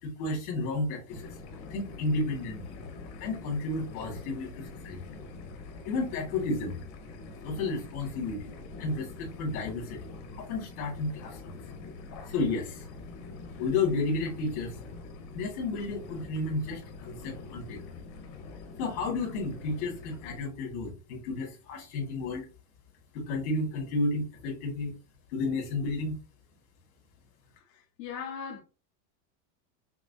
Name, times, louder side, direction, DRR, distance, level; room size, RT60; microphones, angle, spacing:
voice 1, 0.0-1.4 1.7-2.7 3.2-5.0 5.8-6.8 7.4-8.5 8.8-11.6 12.3-12.9 13.6-14.8 15.3-17.9 18.8-22.5 23.1-24.9 25.3-26.2, left 3 dB, 65° left, 1.9 m, -32 dB
sound 1, 1.1-20.4, left 3 dB, 45° left, 1.1 m, -45 dB
voice 2, 27.7-28.6, left 7 dB, 90° left, 1.2 m, -39 dB
5.8 x 2.0 x 2.7 m
supercardioid pair, 165°, 47 cm